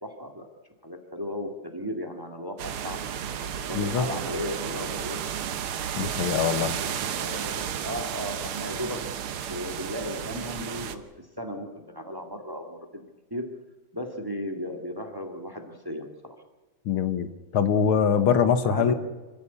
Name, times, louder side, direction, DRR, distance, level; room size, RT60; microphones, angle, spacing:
voice 1, 0.0-0.5 0.8-3.0 3.7-5.2 6.7-9.0 9.5-13.1 13.3-13.5 13.9-16.4 18.6-18.9, left 1 dB, 10° right, 5 dB, 1.8 m, -35 dB
sound 1, 2.6-11.0, right 9 dB, 85° right, 2.0 m, -32 dB
voice 2, 3.7-4.1 6.0-6.7 16.9-17.3 17.5-18.9, left 7 dB, 75° left, 11 dB, 2.0 m, -23 dB
26.0 x 15.0 x 8.3 m, 1.2 s
omnidirectional pair, 2.3 m